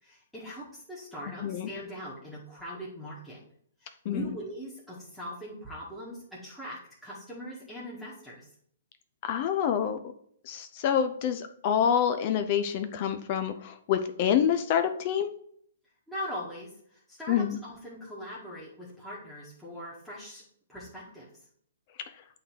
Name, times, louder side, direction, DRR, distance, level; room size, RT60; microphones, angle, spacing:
voice 1, 0.0-3.4 3.8-8.5 16.1-20.4 20.7-21.3, equal, 5° left, -8 dB, 1.7 m, -41 dB
voice 2, 9.2-10.0 10.4-15.3 17.3-17.6, left 8 dB, 40° left, 9 dB, 0.6 m, -27 dB
8.5 x 3.4 x 4.6 m, 0.64 s
figure-of-eight pair, 120°, 0 cm